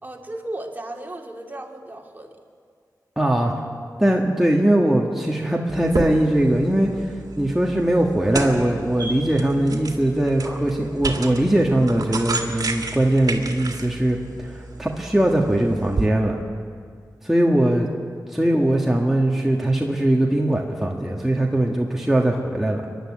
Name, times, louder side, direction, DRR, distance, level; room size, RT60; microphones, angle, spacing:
voice 1, 0.0-2.4, right 1 dB, 25° right, 1 dB, 2.4 m, -35 dB
voice 2, 3.2-3.5 4.0-6.9 7.4-16.4 17.2-17.9 18.3-22.8, right 1 dB, 5° right, -1 dB, 1.6 m, -20 dB
sound 1, 5.7-16.1, right 3 dB, 60° right, 2.2 m, -32 dB
22.5 x 11.5 x 9.9 m, 2.1 s
wide cardioid pair, 75°, 7 cm